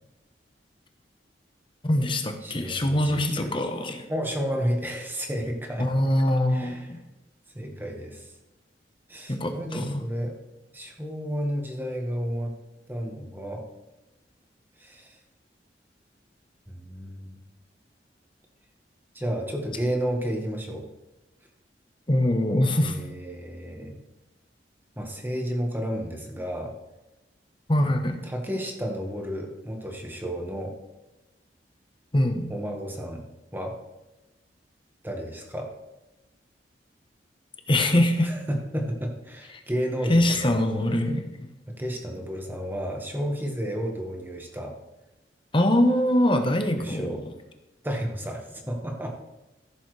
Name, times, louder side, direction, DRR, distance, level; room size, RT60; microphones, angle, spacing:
voice 1, 1.8-4.0 5.8-7.0 9.3-10.0 22.1-23.0 27.7-28.2 32.1-32.5 37.7-38.3 40.1-41.5 45.5-47.2, left 1 dB, 30° left, 6 dB, 1.0 m, -23 dB
voice 2, 2.4-3.5 4.1-5.9 6.5-6.9 7.5-8.3 9.1-10.3 10.7-12.5 12.9-13.6 14.8-15.2 16.7-17.4 19.1-20.9 22.6-24.0 25.0-26.7 28.2-30.7 32.5-33.2 33.5-33.8 35.0-35.7 38.2-40.6 41.7-44.7 46.8-47.2 47.8-49.2, equal, 10° right, 1 dB, 1.5 m, -32 dB
14.5 x 7.0 x 3.3 m, 1.0 s
head